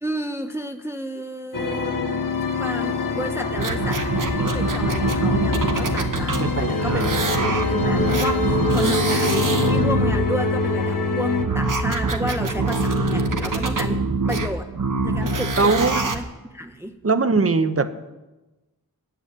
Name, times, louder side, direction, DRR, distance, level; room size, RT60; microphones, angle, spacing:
voice 1, 0.0-2.2 2.6-14.0 14.3-14.7 15.0-16.2 16.5-16.9, equal, 5° right, 6 dB, 0.6 m, -31 dB
sound 1, 1.5-11.5, left 4 dB, 60° left, 1.2 m, -25 dB
sound 2, 3.6-6.5 6.8-10.1 11.4-16.2 16.8-16.9, right 2 dB, 55° right, 1.2 m, -24 dB
voice 2, 6.4-7.6 12.6-12.7 15.6-16.0 17.0-17.9, right 4 dB, 40° right, 11 dB, 0.8 m, -22 dB
sound 3, 6.7-14.0, right 3 dB, 20° left, 1.1 m, -30 dB
9.2 x 7.0 x 8.8 m, 1.1 s
wide cardioid pair, 50°, 37 cm